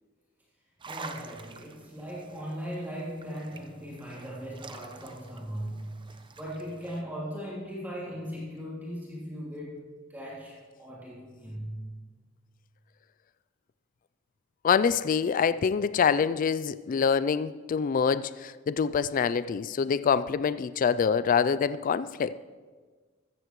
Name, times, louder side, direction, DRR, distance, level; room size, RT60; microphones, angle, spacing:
sound 1, 0.8-7.0, right 4 dB, 25° right, 0.7 m, -48 dB
voice 1, 0.9-12.0, equal, 10° right, -7 dB, 3.0 m, -38 dB
voice 2, 14.6-22.4, left 6 dB, 45° left, 14 dB, 0.3 m, -25 dB
14.5 x 14.5 x 3.1 m, 1.4 s
head